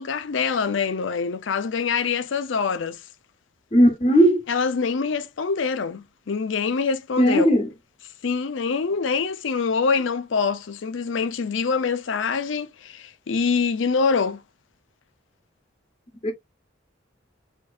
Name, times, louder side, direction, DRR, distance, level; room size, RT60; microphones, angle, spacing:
voice 1, 0.0-3.0 4.5-7.5 8.2-14.4, left 5 dB, 85° left, 0.5 m, -25 dB
voice 2, 3.7-4.4 7.2-7.7 16.2-16.3, equal, 30° left, 0.7 m, -17 dB
4.3 x 2.7 x 2.3 m
head